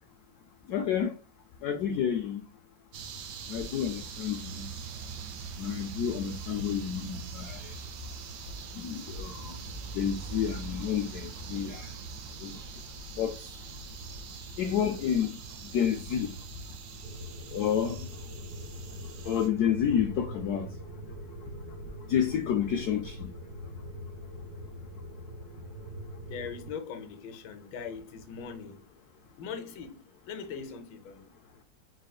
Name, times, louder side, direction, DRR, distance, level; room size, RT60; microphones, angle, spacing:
voice 1, 0.7-1.2 1.6-2.4 3.5-4.7 5.6-7.7 8.7-11.9 12.4-12.6 13.1-13.5 14.6-15.4 15.6-16.3 17.5-18.1 19.2-20.8 22.1-23.3, left 8 dB, 70° left, 1.0 m, -30 dB
sound 1, 2.9-19.5, right 5 dB, 70° right, 1.2 m, -42 dB
sound 2, 17.0-26.7, equal, 55° right, 1.7 m, -42 dB
voice 2, 26.3-28.9 29.4-31.3, left 6 dB, 90° left, 1.6 m, -41 dB
4.1 x 4.0 x 2.3 m
omnidirectional pair, 2.0 m